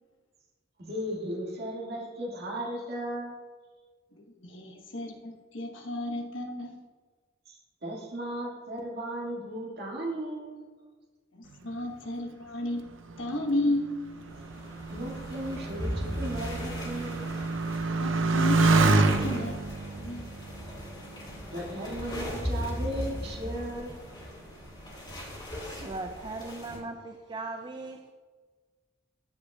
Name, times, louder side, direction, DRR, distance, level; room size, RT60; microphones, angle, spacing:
voice 1, 0.8-3.3 7.5-10.6 14.9-17.2 21.5-24.1, right 1 dB, 55° right, -4 dB, 1.9 m, -36 dB
voice 2, 4.2-6.8 11.3-13.9 18.0-19.6 19.9-20.3, left 1 dB, 85° left, 2 dB, 1.1 m, -33 dB
Motorcycle, 12.9-21.9 22.6-23.2, right 3 dB, 85° right, 0.6 m, -28 dB
sound 1, 14.2-26.8, equal, 25° left, 2.5 m, -38 dB
voice 3, 25.6-28.1, right 3 dB, 25° right, 5 dB, 0.3 m, -39 dB
14.5 x 5.2 x 2.3 m, 1.4 s
head